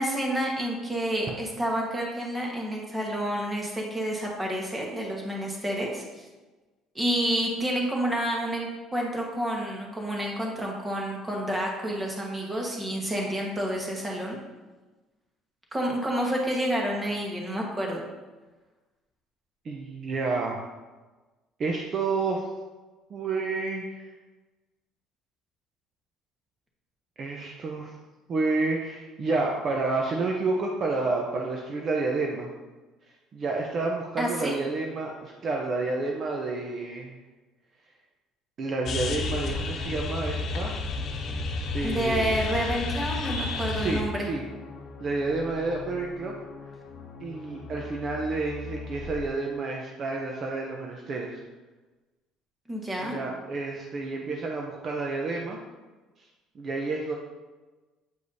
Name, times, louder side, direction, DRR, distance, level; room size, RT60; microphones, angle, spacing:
voice 1, 0.0-6.2 6.9-14.4 15.7-18.1 34.2-34.6 41.8-44.3 52.7-53.2, right 1 dB, 15° right, -1 dB, 1.4 m, -29 dB
voice 2, 19.6-20.7 21.6-22.4 23.1-24.0 27.2-27.9 28.3-32.5 33.3-37.2 38.6-40.7 41.7-42.3 43.8-44.4 45.0-46.3 47.2-51.4 53.0-55.6 56.2-56.3 56.5-57.2, right 3 dB, 40° right, 0 dB, 0.7 m, -30 dB
sound 1, 38.9-49.3, left 3 dB, 55° left, 1.0 m, -33 dB
8.3 x 4.9 x 2.7 m, 1.2 s
cardioid pair, 115°, 0 cm